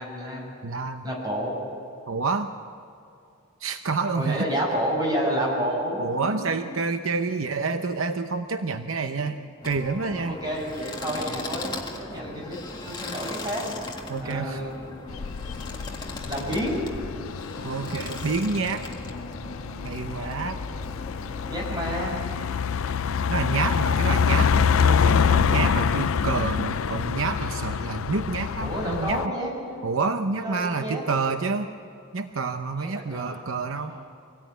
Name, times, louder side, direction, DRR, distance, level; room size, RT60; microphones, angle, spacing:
voice 1, 0.0-0.5 1.0-1.6 4.1-6.5 9.1-9.3 10.2-12.6 12.8-13.6 14.2-14.7 16.3-16.8 21.5-22.2 25.6-25.8 28.6-29.8 30.4-31.0 32.8-33.4 33.7-34.0, equal, 20° right, -2 dB, 6.2 m, -30 dB
voice 2, 0.6-1.0 2.1-2.5 3.6-4.5 6.0-9.4 9.6-10.4 14.1-14.6 17.6-18.8 19.8-20.6 23.3-29.3 29.8-31.7 32.1-33.9, right 4 dB, 75° right, 8 dB, 0.8 m, -28 dB
sound 1, 9.6-21.8, left 2 dB, 20° left, 1.7 m, -38 dB
sound 2, 15.1-29.3, left 6 dB, 75° left, 0.5 m, -26 dB
25.0 x 17.5 x 9.3 m, 2.5 s
head